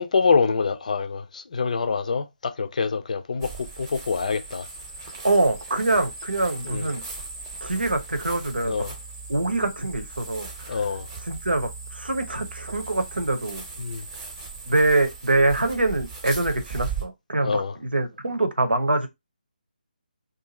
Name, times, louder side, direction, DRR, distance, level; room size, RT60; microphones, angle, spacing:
voice 1, 0.0-4.7 6.6-6.9 8.7-8.9 10.7-11.1 13.8-14.1 17.4-17.8, left 5 dB, 50° left, 0.5 m, -25 dB
sound 1, 3.4-17.0, right 4 dB, 20° right, 0.8 m, -38 dB
voice 2, 5.2-7.0 7.6-8.8 9.3-10.8 11.3-13.6 14.7-19.1, right 2 dB, 80° right, 0.8 m, -24 dB
2.7 x 2.5 x 4.1 m
figure-of-eight pair, 150°, 5 cm